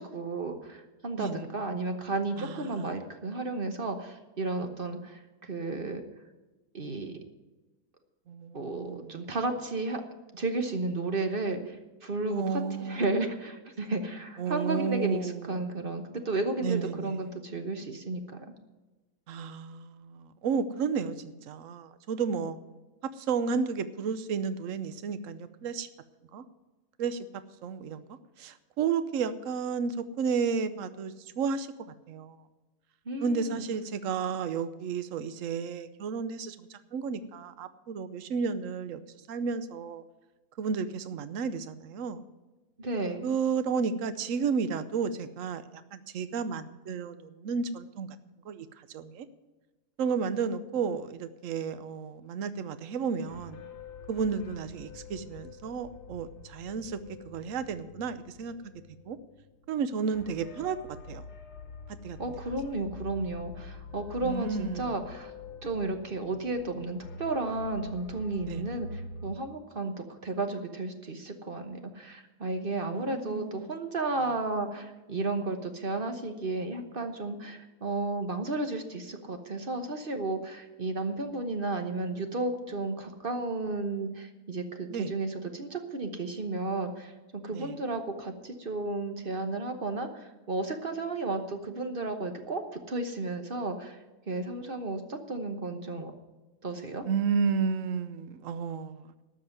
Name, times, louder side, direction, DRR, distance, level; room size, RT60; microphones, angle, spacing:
voice 1, 0.0-6.0 6.7-7.2 8.5-10.0 10.3-11.8 12.0-18.4 33.1-33.6 42.8-43.3 62.2-65.3 65.6-94.0 94.3-96.1 96.6-97.0, right 2 dB, 40° right, 6 dB, 1.2 m, -33 dB
voice 2, 2.4-2.9 8.3-9.2 12.3-13.1 14.4-15.7 16.6-17.2 19.3-22.6 23.0-25.9 26.3-26.4 27.0-27.3 27.6-31.7 32.1-32.4 33.2-40.0 40.6-42.3 43.2-45.6 45.9-48.1 48.4-49.3 50.0-53.6 54.1-57.0 57.2-58.5 59.1-59.2 59.7-61.2 62.0-62.2 64.2-65.0 68.4-68.6 72.9-73.7 84.9-85.1 87.5-87.7 97.1-99.1, right 5 dB, 60° right, 12 dB, 1.1 m, -32 dB
sound 1, 53.3-69.3, left 3 dB, 80° left, 1.6 m, -46 dB
13.0 x 6.2 x 9.4 m, 1.2 s
omnidirectional pair, 1.7 m